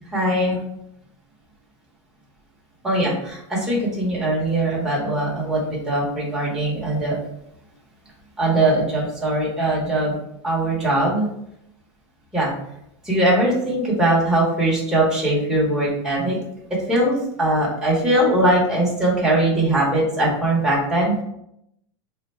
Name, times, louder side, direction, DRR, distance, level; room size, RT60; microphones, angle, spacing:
voice 1, 0.1-0.6 2.8-5.6 5.9-7.2 8.4-10.2 10.4-11.3 12.3-12.5 13.0-16.4 16.9-21.2, right 1 dB, 5° right, -7 dB, 0.9 m, -21 dB
3.6 x 2.2 x 4.1 m, 0.78 s
supercardioid pair, 170°, 15 cm